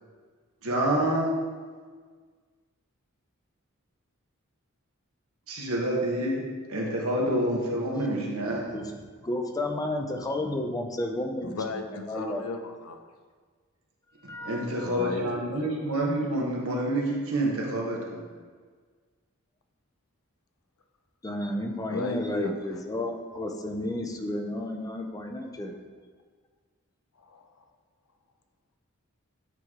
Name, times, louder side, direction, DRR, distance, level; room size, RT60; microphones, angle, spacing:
voice 1, 0.6-1.3 5.5-8.7 14.4-18.3, right 1 dB, 80° right, -2 dB, 1.3 m, -28 dB
voice 2, 8.5-9.0 9.2-12.4 14.3-15.0 21.2-25.7, left 1 dB, 15° left, 3 dB, 0.5 m, -32 dB
voice 3, 11.4-13.1 14.8-15.8 21.9-22.5 27.2-27.6, left 3 dB, 85° left, 5 dB, 0.6 m, -36 dB
9.0 x 3.1 x 3.6 m, 1.5 s
head